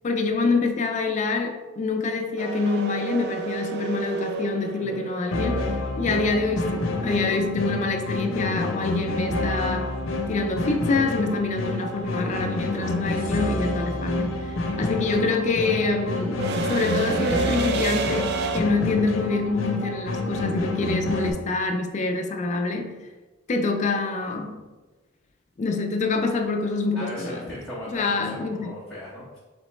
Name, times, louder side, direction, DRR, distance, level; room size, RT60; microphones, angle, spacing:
voice 1, 0.0-5.7 6.0-9.9 10.3-14.5 14.8-22.9 23.5-24.6 25.6-27.5 27.9-28.7, left 3 dB, 35° left, 5 dB, 0.4 m, -26 dB
sound 1, 2.4-6.4 8.8-8.9 10.2-10.5 10.8-18.6, right 5 dB, 55° right, 0.4 m, -31 dB
sound 2, 5.3-21.3, left 2 dB, 80° left, 0.6 m, -28 dB
voice 2, 27.0-29.4, equal, ahead, -9 dB, 0.8 m, -37 dB
4.1 x 3.8 x 3.1 m, 1.2 s
head